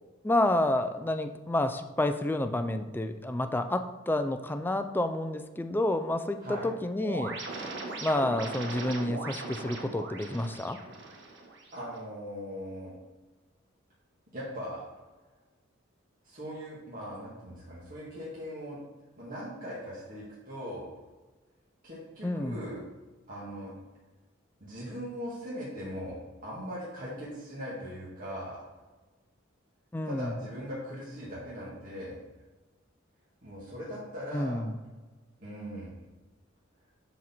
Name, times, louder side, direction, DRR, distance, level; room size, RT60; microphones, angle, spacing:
voice 1, 0.2-7.4 8.0-10.8 22.2-22.6 29.9-30.3 34.3-34.8, left 1 dB, 10° left, 8 dB, 0.4 m, -29 dB
sound 1, 7.0-12.0, right 3 dB, 65° right, 1.5 m, -39 dB
voice 2, 11.7-12.9 14.3-14.9 16.2-18.8 19.2-20.9 21.8-22.8 23.3-23.7 24.6-26.2 26.4-28.6 30.0-32.2 33.4-34.6 35.4-35.9, equal, 45° right, -8 dB, 1.8 m, -40 dB
11.0 x 4.1 x 4.4 m, 1.2 s
head